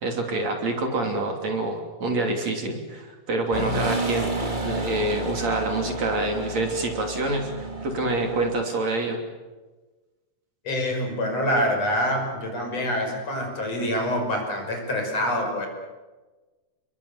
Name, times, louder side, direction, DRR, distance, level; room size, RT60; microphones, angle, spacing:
voice 1, 0.0-4.3 4.6-9.2, right 2 dB, 50° right, 3 dB, 4.2 m, -27 dB
sound 1, 3.5-8.6, right 1 dB, 15° right, 2.3 m, -31 dB
voice 2, 10.6-15.7, equal, 45° left, 2 dB, 6.7 m, -26 dB
30.0 x 22.0 x 8.3 m, 1.2 s
omnidirectional pair, 4.1 m